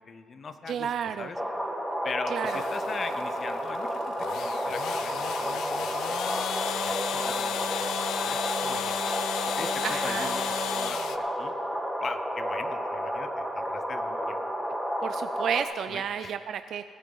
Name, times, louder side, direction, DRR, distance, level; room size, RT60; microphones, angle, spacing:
voice 1, 0.1-0.9 1.2-1.4 2.0-4.0 4.4-6.5 6.7-9.0 9.6-10.4 10.7-11.5 12.0-14.4 15.9-16.3, left 5 dB, 45° left, 10 dB, 0.8 m, -40 dB
voice 2, 0.7-1.3 2.3-2.6 9.8-10.3 15.0-16.8, right 8 dB, 65° right, 10 dB, 0.4 m, -31 dB
sound 1, 1.3-15.6, equal, ahead, 1.4 m, -31 dB
sound 2, 2.5-11.2, left 9 dB, 80° left, 0.4 m, -34 dB
19.0 x 9.3 x 4.0 m, 2.2 s
cardioid pair, 90°, 0 cm